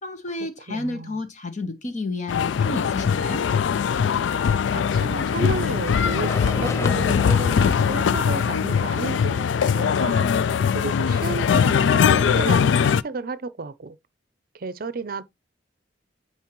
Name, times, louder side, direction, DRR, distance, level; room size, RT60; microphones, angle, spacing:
voice 1, 0.0-3.4, left 2 dB, 45° left, 1.2 m, -31 dB
voice 2, 0.7-1.2 4.7-10.3 10.7-14.0 14.5-15.2, right 4 dB, 55° right, 0.6 m, -33 dB
sound 1, 2.3-13.0, left 7 dB, 90° left, 0.3 m, -21 dB
sound 2, 5.1-12.8, left 2 dB, 15° left, 0.4 m, -37 dB
9.3 x 4.5 x 3.1 m
head